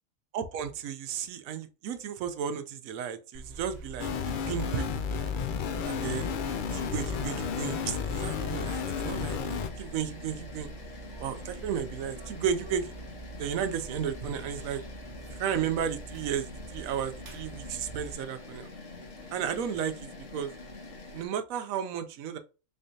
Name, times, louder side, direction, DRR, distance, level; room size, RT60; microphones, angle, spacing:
voice 1, 0.3-4.8 5.8-6.3 6.7-10.7 11.2-12.9 13.4-14.8 15.4-18.7 19.3-20.5 21.1-22.4, right 8 dB, 80° right, 1.0 m, -33 dB
sound 1, 3.3-18.1, right 2 dB, 50° right, 1.0 m, -45 dB
sound 2, 4.0-9.7, left 6 dB, 85° left, 0.4 m, -32 dB
sound 3, 5.7-21.3, left 3 dB, 45° left, 1.3 m, -46 dB
3.6 x 3.3 x 2.7 m
omnidirectional pair, 1.5 m